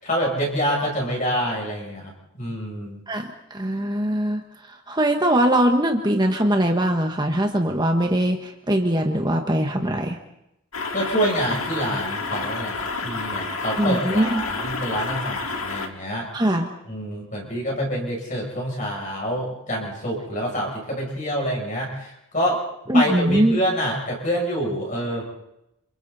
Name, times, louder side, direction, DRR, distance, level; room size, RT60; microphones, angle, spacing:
voice 1, 0.0-3.0 10.9-16.3 16.9-22.6 22.9-25.2, equal, 35° left, -2 dB, 7.6 m, -26 dB
voice 2, 3.1-4.4 4.7-10.2 13.8-14.4 16.3-16.7 22.9-23.6, right 1 dB, 20° right, 3 dB, 1.4 m, -21 dB
sound 1, 10.7-15.9, left 3 dB, 85° left, 2.2 m, -29 dB
28.5 x 28.0 x 4.2 m, 0.84 s
head